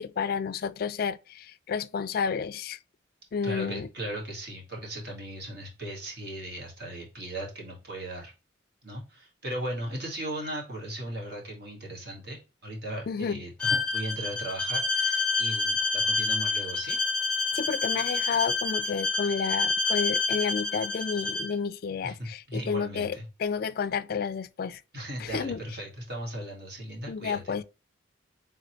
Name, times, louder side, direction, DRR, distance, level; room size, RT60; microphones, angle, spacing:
voice 1, 0.0-2.8 3.3-3.9 13.1-13.4 17.5-24.8 25.2-25.6 27.1-27.6, left 6 dB, 50° left, 0.3 m, -31 dB
voice 2, 3.4-8.3 8.8-17.0 22.0-23.2 24.9-27.6, right 1 dB, 55° right, 1.9 m, -37 dB
Bowed string instrument, 13.6-21.5, left 3 dB, 5° left, 0.6 m, -28 dB
4.0 x 3.7 x 3.1 m
head